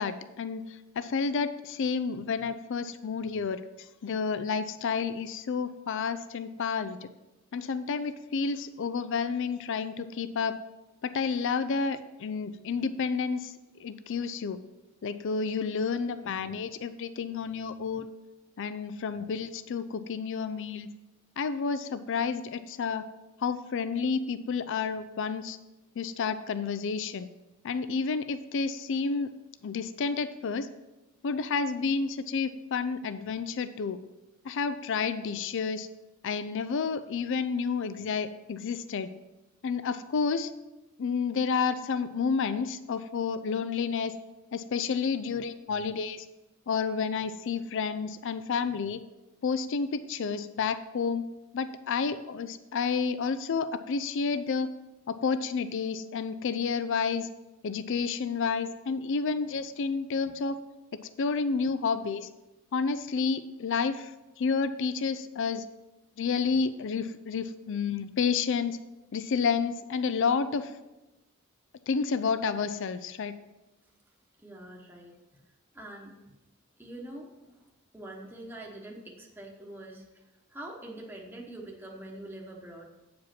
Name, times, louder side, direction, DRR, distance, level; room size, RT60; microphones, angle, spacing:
voice 1, 0.0-7.1 7.5-10.6 11.0-13.5 13.8-14.6 15.0-18.1 18.6-20.9 21.4-23.0 23.4-25.6 26.0-27.3 27.6-29.3 29.6-30.7 31.2-34.0 34.4-35.9 36.2-39.1 39.6-40.5 41.0-44.1 44.5-46.3 46.7-49.0 49.4-51.3 51.5-54.7 55.1-57.3 57.6-60.6 60.9-62.3 62.7-65.7 66.2-68.8 69.1-70.7 71.9-73.4, left 5 dB, 60° left, 12 dB, 0.4 m, -30 dB
voice 2, 74.4-75.2 75.7-76.1 76.8-77.6 77.9-80.2 80.5-82.9, right 1 dB, 10° right, -2 dB, 1.0 m, -44 dB
8.4 x 5.1 x 5.8 m, 1.0 s
head